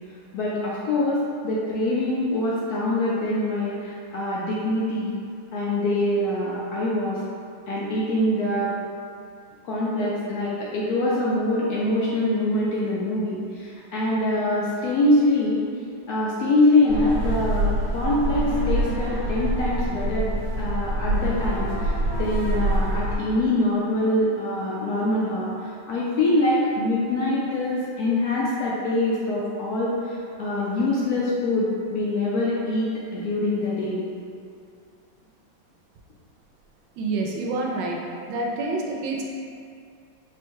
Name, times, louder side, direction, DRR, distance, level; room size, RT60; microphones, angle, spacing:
voice 1, 0.3-5.2 5.5-7.2 7.7-8.7 9.6-15.6 16.1-34.0, left 1 dB, 70° left, -6 dB, 0.9 m, -24 dB
sound 1, 16.9-23.2, right 1 dB, 50° right, 1.5 m, -25 dB
voice 2, 37.0-38.0 38.3-39.2, right 3 dB, 75° right, -1 dB, 1.3 m, -27 dB
4.3 x 2.2 x 4.5 m, 2.4 s
omnidirectional pair, 2.1 m